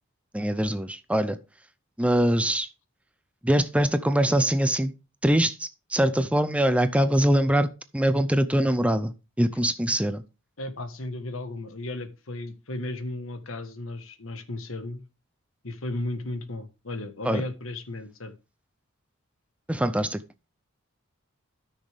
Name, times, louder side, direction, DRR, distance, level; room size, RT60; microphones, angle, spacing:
voice 1, 0.3-1.4 2.0-2.7 3.4-4.9 5.2-10.2 17.2-17.4 19.7-20.2, right 1 dB, 5° right, 0.5 m, -23 dB
voice 2, 10.6-15.0 15.6-18.3, left 2 dB, 70° left, 1.5 m, -35 dB
13.0 x 6.5 x 3.5 m
head